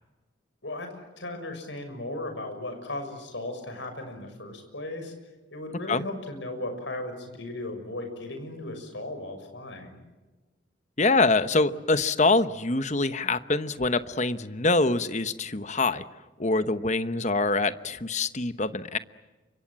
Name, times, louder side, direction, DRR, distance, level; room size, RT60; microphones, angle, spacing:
voice 1, 0.6-5.1 5.5-10.0, left 2 dB, 65° left, 6 dB, 6.5 m, -36 dB
voice 2, 11.0-16.0 16.4-19.0, left 3 dB, 35° left, 12 dB, 1.0 m, -25 dB
29.5 x 25.5 x 7.5 m, 1.2 s
head